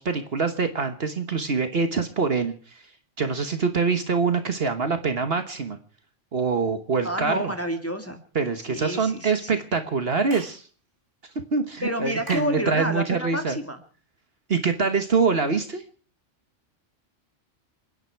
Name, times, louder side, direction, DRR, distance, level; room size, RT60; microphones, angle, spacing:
voice 1, 0.0-2.8 3.2-5.8 6.3-7.5 8.3-10.6 11.5-13.6 14.5-15.8, right 5 dB, 50° right, 8 dB, 1.4 m, -25 dB
voice 2, 7.0-8.2 8.7-9.6 11.8-13.8, equal, 10° left, 5 dB, 1.9 m, -29 dB
Clapping / Chirp tweet, 10.3-10.6 12.3-12.6, right 2 dB, 70° right, 3.2 m, -39 dB
29.0 x 9.8 x 4.6 m, 0.42 s
omnidirectional pair, 1.3 m